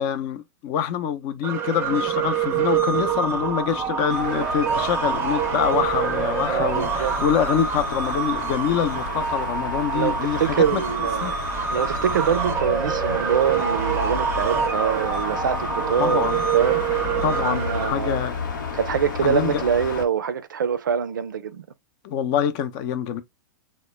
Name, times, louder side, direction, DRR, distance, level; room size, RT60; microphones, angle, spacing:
voice 1, 0.0-10.8 11.2-11.3 16.0-16.4 17.2-18.3 19.2-19.6 22.0-23.2, left 9 dB, 45° left, 0.5 m, -25 dB
sound 1, 1.4-17.9, right 7 dB, 25° right, 0.5 m, -26 dB
sound 2, 4.1-20.0, left 4 dB, 80° left, 0.9 m, -32 dB
voice 2, 6.5-7.1 9.9-11.4 11.7-16.8 17.4-18.3 18.7-21.6, right 7 dB, 85° right, 0.4 m, -25 dB
2.2 x 2.1 x 3.0 m
hypercardioid pair, 120°, 10 cm